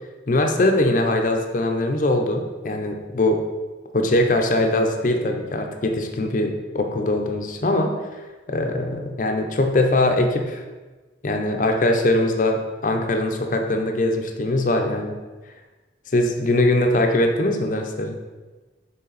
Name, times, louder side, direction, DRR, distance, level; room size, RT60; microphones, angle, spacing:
voice 1, 0.3-3.4 3.9-8.2 8.5-10.6 11.2-15.2 16.1-18.2, left 1 dB, 45° left, 4 dB, 0.6 m, -21 dB
6.6 x 3.6 x 3.9 m, 1.3 s
head